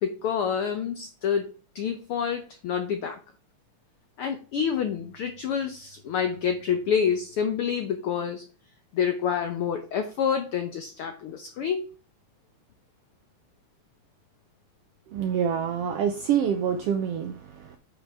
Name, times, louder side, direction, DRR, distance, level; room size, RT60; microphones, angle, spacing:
voice 1, 0.0-3.2 4.2-8.4 8.9-11.8, left 7 dB, 80° left, 7 dB, 1.2 m, -28 dB
voice 2, 15.1-17.8, right 8 dB, 75° right, 7 dB, 1.4 m, -26 dB
9.5 x 5.2 x 3.5 m, 0.34 s
omnidirectional pair, 3.5 m